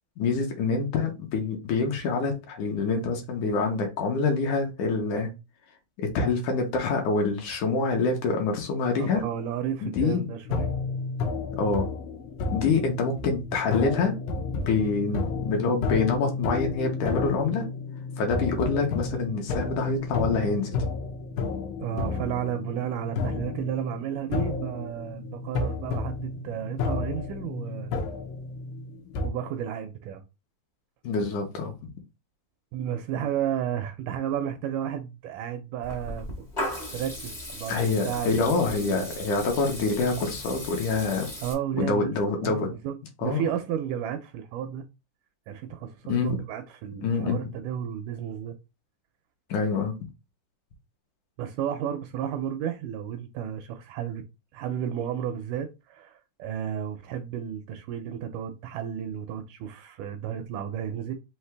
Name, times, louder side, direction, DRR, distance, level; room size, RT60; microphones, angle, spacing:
voice 1, 0.2-5.3 6.0-9.2 9.8-10.3 11.6-11.9 12.5-14.2 14.7-17.6 18.2-20.8 31.0-31.9 37.7-41.3 41.8-42.7 43.2-43.4 46.1-46.4 47.0-47.4 49.5-49.9, left 4 dB, 75° left, 2.2 m, -26 dB
voice 2, 9.0-10.7 21.8-27.9 29.2-30.2 32.7-36.3 36.9-39.1 41.4-42.1 42.4-44.8 45.5-48.6 51.4-54.2 54.5-61.1, right 9 dB, 80° right, 1.9 m, -32 dB
sound 1, 10.4-29.3, left 4 dB, 90° left, 2.6 m, -31 dB
Water tap faucet / Liquid, 35.8-41.5, left 1 dB, 40° left, 0.6 m, -37 dB
5.7 x 2.8 x 3.3 m
omnidirectional pair, 3.9 m